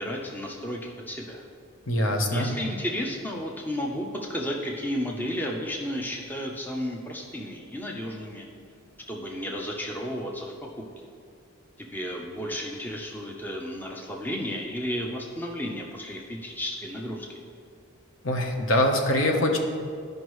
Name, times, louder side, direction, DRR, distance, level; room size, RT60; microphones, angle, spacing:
voice 1, 0.0-1.4 2.3-8.5 9.1-10.8 11.8-17.4, equal, 10° left, -1 dB, 0.6 m, -33 dB
voice 2, 1.9-2.5 18.2-19.6, left 1 dB, 70° left, 2 dB, 1.0 m, -23 dB
13.0 x 5.3 x 3.1 m, 2.2 s
head